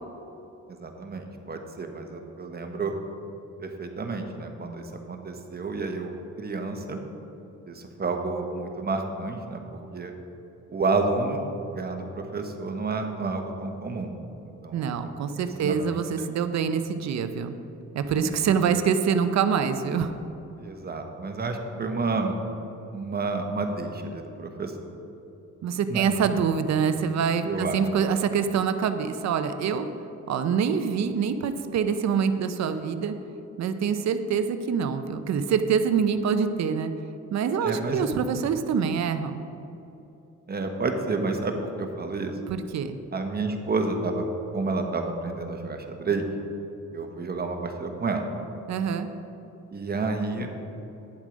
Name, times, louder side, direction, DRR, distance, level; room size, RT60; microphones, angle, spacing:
voice 1, 0.7-2.9 3.6-6.1 6.4-7.0 7.7-10.1 10.7-11.4 11.7-14.1 14.4-14.9 15.3-16.0 18.2-18.6 20.6-22.4 22.9-24.7 25.9-26.1 27.4-27.8 37.6-38.1 40.5-42.3 43.1-44.2 44.5-46.3 46.9-48.2 49.7-50.5, right 3 dB, 30° right, 4 dB, 1.2 m, -30 dB
voice 2, 14.7-17.6 17.9-20.1 25.6-29.9 30.3-33.1 33.6-36.9 37.3-39.4 42.5-43.0 48.7-49.1, right 6 dB, 65° right, 9 dB, 0.7 m, -25 dB
9.9 x 7.3 x 5.1 m, 2.9 s
cardioid pair, 90°, 30 cm